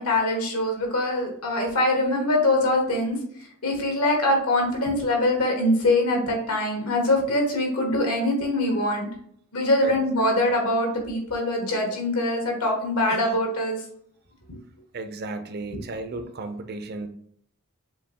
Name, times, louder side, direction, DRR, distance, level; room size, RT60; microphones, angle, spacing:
voice 1, 0.0-9.1 9.5-13.8 14.5-14.6 15.7-15.8, left 1 dB, 90° left, 1 dB, 1.5 m, -23 dB
voice 2, 9.8-10.3 13.1-13.3 14.9-17.1, right 2 dB, 45° right, 8 dB, 0.5 m, -35 dB
6.7 x 2.7 x 2.8 m, 0.64 s
head